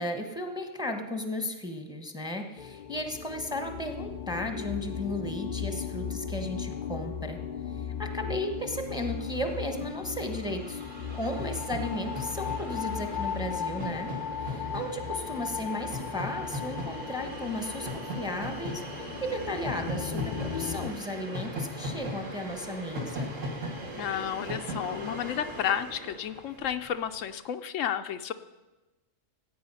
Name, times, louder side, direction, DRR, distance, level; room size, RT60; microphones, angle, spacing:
voice 1, 0.0-7.4 8.0-10.8 11.1-14.1 14.5-23.3, left 1 dB, 5° right, 5 dB, 1.0 m, -35 dB
sound 1, 2.6-20.9, left 7 dB, 55° left, 0.5 m, -37 dB
Train, 8.7-27.1, equal, 75° right, 2.3 m, -39 dB
voice 2, 24.0-28.3, left 9 dB, 75° left, 10 dB, 1.0 m, -32 dB
15.5 x 8.7 x 5.5 m, 1.1 s
omnidirectional pair, 1.3 m